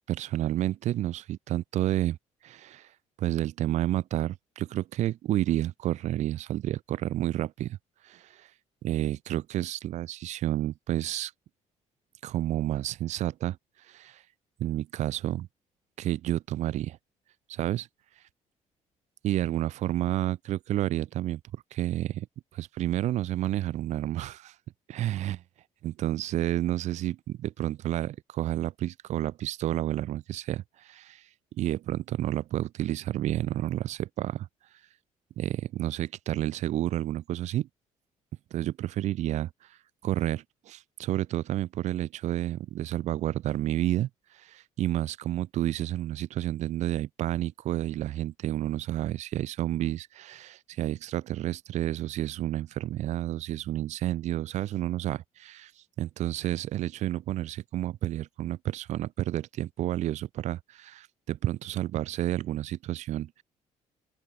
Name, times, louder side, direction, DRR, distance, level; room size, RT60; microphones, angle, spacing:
voice 1, 0.1-2.2 2.4-2.9 3.2-7.8 8.0-8.5 8.8-11.3 12.2-13.6 13.9-14.2 14.6-15.5 16.0-17.0 17.5-17.9 19.2-21.4 21.7-22.3 22.5-24.5 24.9-25.4 25.8-31.3 31.6-34.5 35.4-37.7 38.5-55.7 56.0-63.4, right 13 dB, 65° right, 0.8 m, -30 dB
open air
cardioid pair, 115°, 13 cm